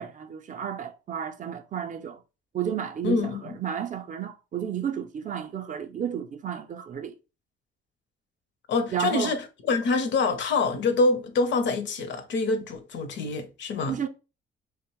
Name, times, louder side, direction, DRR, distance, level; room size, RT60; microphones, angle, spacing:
voice 1, 0.0-2.2 2.5-7.2 8.9-9.4 13.9-14.1, right 9 dB, 40° right, 0.4 m, -32 dB
voice 2, 3.0-3.4 8.7-14.0, left 3 dB, 65° left, 0.6 m, -26 dB
2.8 x 2.0 x 2.9 m
cardioid pair, 90°, 20 cm